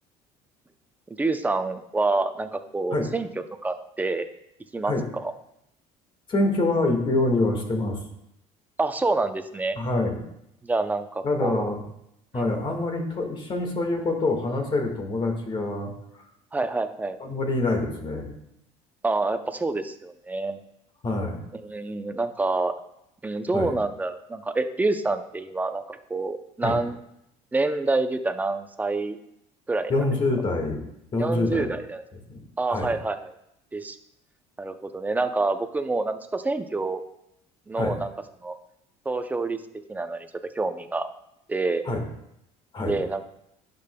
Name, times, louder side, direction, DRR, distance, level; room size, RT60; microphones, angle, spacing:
voice 1, 1.2-3.3 3.6-4.3 4.7-5.3 8.8-9.8 10.6-11.7 12.3-12.6 16.5-17.2 19.0-20.6 21.6-22.7 23.2-27.0 27.5-29.2 29.7-29.9 31.2-32.0 32.6-33.3 33.7-34.0 34.6-37.0 37.7-38.1 38.4-38.6 39.1-39.6 39.9-40.3 40.6-41.1 41.5-41.8 42.9-43.3, right 3 dB, 10° right, 9 dB, 0.5 m, -27 dB
voice 2, 6.3-8.0 9.7-10.2 11.2-11.8 12.3-15.9 17.2-18.3 21.0-21.4 23.5-23.7 26.6-26.8 29.9-30.8 31.1-31.7 32.3-32.4 32.7-33.0 37.7-38.0 41.8-42.0 42.7-43.0, left 2 dB, 35° left, 3 dB, 1.7 m, -26 dB
11.5 x 5.3 x 2.2 m, 0.79 s
cardioid pair, 115°, 15 cm